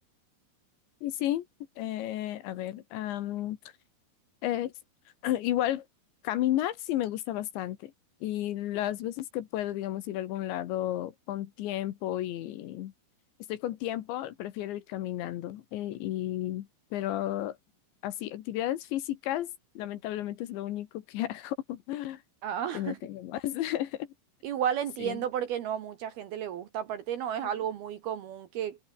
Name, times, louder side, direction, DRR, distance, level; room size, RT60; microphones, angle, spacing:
voice 1, 1.0-1.4 1.8-3.6 4.4-4.7 5.2-5.9 6.2-7.9 8.2-12.9 13.5-17.6 18.0-22.2 22.7-24.1 25.0-25.2, left 13 dB, 70° left, 3.4 m, -32 dB
voice 2, 22.4-23.0 24.4-28.8, right 9 dB, 65° right, 2.7 m, -32 dB
omnidirectional pair, 5.8 m